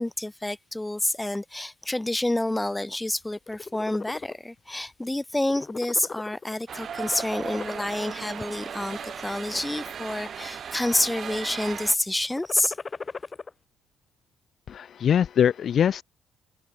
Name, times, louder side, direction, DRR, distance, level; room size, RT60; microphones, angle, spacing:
voice 1, 0.0-12.8, left 1 dB, 10° left, 3.3 m, -28 dB
sound 1, 3.4-4.4 4.8-5.1 5.4-6.6 7.0-8.1 8.7-9.2 9.8-10.6 10.8-11.4 12.2-13.5, left 4 dB, 30° left, 4.6 m, -38 dB
sound 2, 6.7-12.0, right 7 dB, 55° right, 0.8 m, -37 dB
voice 2, 14.7-16.0, left 8 dB, 60° left, 0.6 m, -22 dB
cardioid pair, 90°, 0 cm